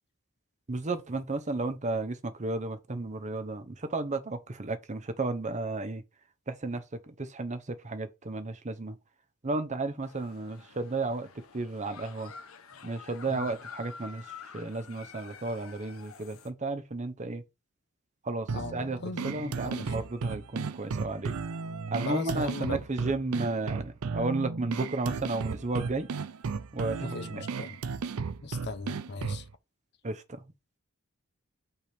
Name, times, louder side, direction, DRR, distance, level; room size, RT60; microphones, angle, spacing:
voice 1, 0.7-6.0 6.5-9.0 9.4-11.3 11.5-12.3 12.8-17.4 18.2-19.0 19.2-21.3 21.9-26.1 26.7-27.4 30.0-30.4, right 3 dB, 35° right, 0.8 m, -33 dB
sound 1, 10.0-16.5, left 6 dB, 75° left, 1.0 m, -48 dB
sound 2, 18.5-29.5, right 5 dB, 90° right, 0.5 m, -35 dB
voice 2, 19.0-19.9 22.1-23.1 27.0-27.8 28.4-29.4, left 3 dB, 55° left, 0.8 m, -38 dB
5.6 x 3.5 x 5.9 m
head